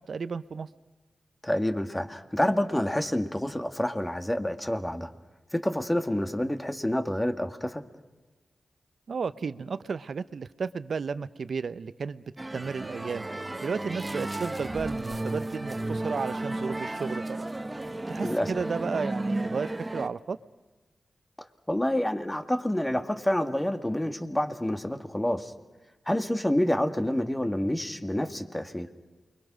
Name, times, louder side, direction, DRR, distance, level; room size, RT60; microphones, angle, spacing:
voice 1, 0.1-0.7 9.1-12.2 12.5-13.3 13.6-17.5 17.9-20.4, right 5 dB, 75° right, 15 dB, 0.7 m, -33 dB
voice 2, 1.4-5.1 5.5-7.8 18.2-18.5 21.4-25.5 26.1-28.9, left 1 dB, 15° left, 7 dB, 2.0 m, -28 dB
sound 1, 12.4-20.1, right 2 dB, 25° right, 1.4 m, -33 dB
28.5 x 22.5 x 6.2 m, 1.2 s
cardioid pair, 45°, 0 cm